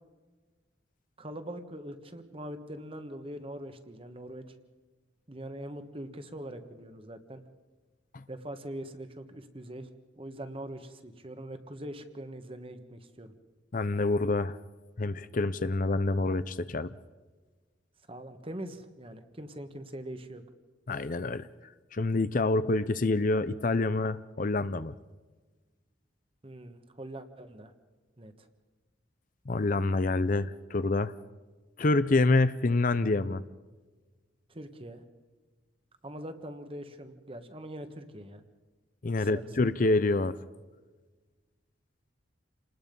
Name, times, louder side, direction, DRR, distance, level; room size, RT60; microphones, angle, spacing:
voice 1, 1.2-4.4 5.3-7.4 8.3-9.9 10.2-13.3 18.1-20.4 26.4-27.7 28.2-28.5 34.5-35.0 36.0-38.4 39.2-39.7, right 1 dB, 30° right, 8 dB, 1.5 m, -42 dB
voice 2, 13.7-14.6 15.0-16.9 20.9-21.5 21.9-24.9 29.5-31.1 31.8-33.4 39.0-40.4, left 2 dB, 45° left, 14 dB, 0.6 m, -27 dB
28.5 x 19.5 x 5.4 m, 1.3 s
head